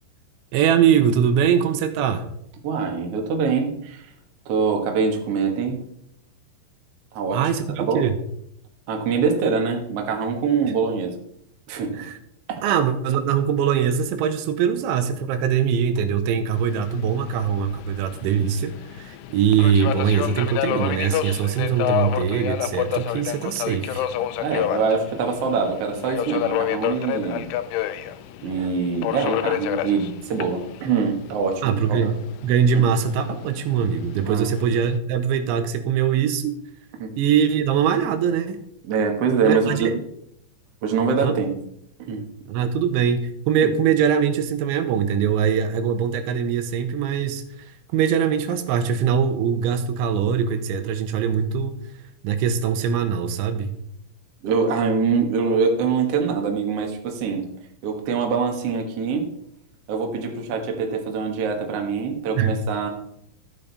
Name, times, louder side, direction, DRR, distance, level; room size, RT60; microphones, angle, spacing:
voice 1, 0.5-2.3 7.3-8.1 11.9-12.2 12.6-24.1 31.6-32.2 32.4-36.6 37.2-38.6 39.4-40.0 41.2-41.3 42.5-51.8 52.2-53.7 62.4-62.5, right 8 dB, 85° right, 9 dB, 3.3 m, -22 dB
voice 2, 2.6-4.1 4.4-5.8 7.1-7.4 7.8-8.0 8.9-11.2 11.7-12.0 12.5-12.6 24.4-27.5 28.4-32.1 32.7-32.8 34.2-34.5 37.0-37.1 38.9-39.9 40.8-41.6 42.0-42.2 54.4-57.5 57.8-59.3 59.9-62.9, right 5 dB, 70° right, 2 dB, 1.5 m, -24 dB
Subway metro underground, 16.5-35.0, left 12 dB, 90° left, 3.1 m, -30 dB
13.5 x 8.8 x 4.1 m, 0.73 s
omnidirectional pair, 5.4 m